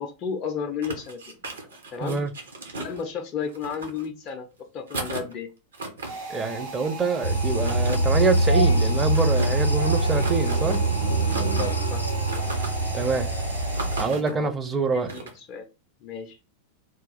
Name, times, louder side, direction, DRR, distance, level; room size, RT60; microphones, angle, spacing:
voice 1, 0.0-1.4 1.9-2.2 2.8-4.5 4.7-5.5 11.4-12.0 12.4-12.5 14.2-14.5 14.9-15.7 16.0-16.4, left 6 dB, 35° left, 0.4 m, -33 dB
sound 1, 0.8-3.0 3.5-4.3 4.9-5.3 5.7-6.1 7.6-8.0 9.1-9.5 10.2-10.8 11.3-11.7 12.3-12.7 13.7-14.3 15.1-15.3, right 2 dB, 70° right, 0.9 m, -35 dB
sound 2, 6.1-14.2, right 3 dB, 50° right, 1.1 m, -38 dB
voice 2, 6.3-10.8 12.9-13.3 14.0-15.1, right 4 dB, 20° right, 0.5 m, -25 dB
sound 3, 7.2-14.1, right 1 dB, 85° left, 0.5 m, -24 dB
3.0 x 2.3 x 3.8 m
figure-of-eight pair, 90°, 0 cm